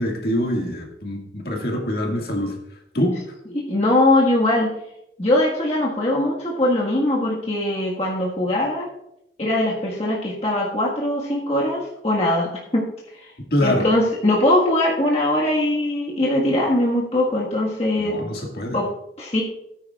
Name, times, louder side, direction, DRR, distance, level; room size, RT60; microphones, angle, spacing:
voice 1, 0.0-2.6 2.9-3.3 13.5-13.9 18.0-18.8, left 1 dB, 55° left, 1 dB, 1.9 m, -24 dB
voice 2, 3.5-4.7 5.2-8.9 9.4-12.8 13.2-13.3 13.6-18.2 18.7-18.9 19.2-19.4, left 1 dB, 35° left, -4 dB, 1.6 m, -21 dB
17.5 x 9.4 x 2.4 m, 0.81 s
head